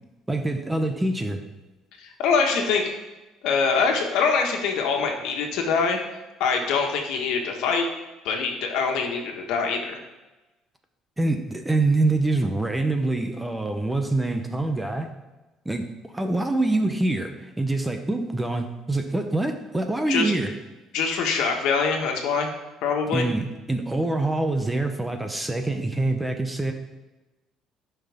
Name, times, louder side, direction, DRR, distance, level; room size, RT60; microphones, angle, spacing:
voice 1, 0.3-1.4 11.2-15.1 15.7-20.6 23.1-26.7, right 2 dB, 10° right, 6 dB, 0.7 m, -25 dB
voice 2, 2.0-2.9 3.4-6.0 6.4-7.9 8.2-10.0 20.1-20.3 20.9-22.5 22.8-23.3, left 5 dB, 75° left, 2 dB, 1.6 m, -24 dB
14.5 x 5.7 x 3.6 m, 1.1 s
cardioid pair, 150°, 0 cm